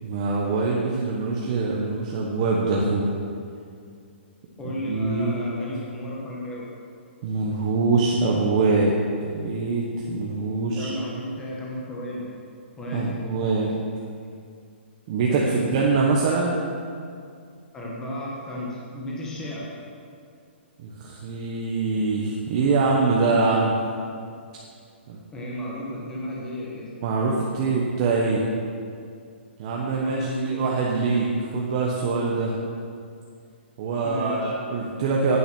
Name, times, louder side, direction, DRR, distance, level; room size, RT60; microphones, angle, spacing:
voice 1, 0.0-3.1 4.6-5.3 7.2-10.9 12.9-13.7 15.1-16.6 20.8-23.8 25.1-25.2 27.0-28.4 29.6-31.3 31.5-32.5 33.8-35.4, right 3 dB, 30° right, -3 dB, 1.1 m, -24 dB
voice 2, 4.6-6.7 10.7-12.3 12.8-13.1 15.3-15.7 17.7-19.7 25.3-26.9 29.9-30.8 34.0-34.5, left 1 dB, 10° left, -4 dB, 1.4 m, -33 dB
10.0 x 9.3 x 6.2 m, 2.3 s
hypercardioid pair, 170°, 6 cm